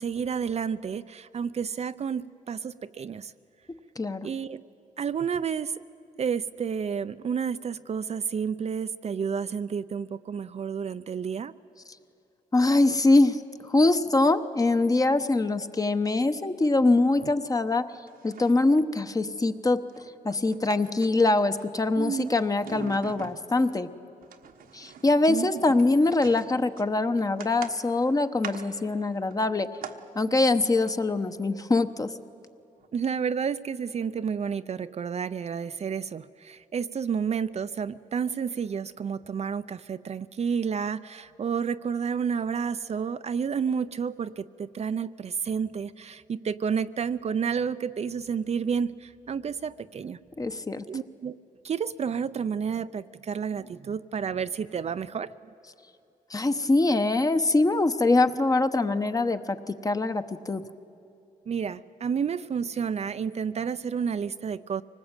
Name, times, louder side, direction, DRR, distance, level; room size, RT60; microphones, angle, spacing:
voice 1, 0.0-3.3 4.2-4.6 5.0-5.7 6.2-11.5 22.0-22.4 25.3-25.6 32.9-50.2 50.9-51.4 51.6-55.3 61.5-64.8, right 6 dB, 45° right, 12 dB, 0.6 m, -30 dB
voice 2, 4.0-4.3 12.5-17.9 18.2-19.8 20.2-23.9 24.7-29.7 30.1-32.1 50.4-50.8 56.3-60.6, left 2 dB, 25° left, 9 dB, 1.0 m, -23 dB
sound 1, 17.1-17.8 18.1-18.8 19.9-21.7 22.0-23.8 24.2-30.0 30.7-31.0 32.5-32.6 32.8-32.9, right 7 dB, 80° right, 1.4 m, -44 dB
24.5 x 20.0 x 9.0 m, 2.7 s
cardioid pair, 85°, 15 cm